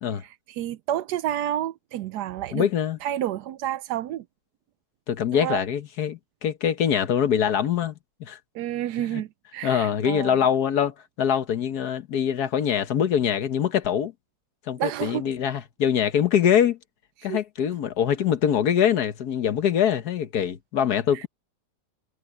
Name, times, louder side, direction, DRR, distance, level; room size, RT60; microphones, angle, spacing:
voice 1, 0.2-2.7 3.0-4.2 5.3-5.6 8.5-10.5 14.8-15.2 17.3-17.4 21.1-21.3, right 12 dB, 75° right, 1.1 m, -30 dB
voice 2, 2.5-3.0 5.1-7.9 8.2-8.4 9.1-9.2 9.6-14.1 14.7-16.8 17.2-21.3, left 9 dB, 65° left, 1.5 m, -23 dB
omnidirectional pair, 1.9 m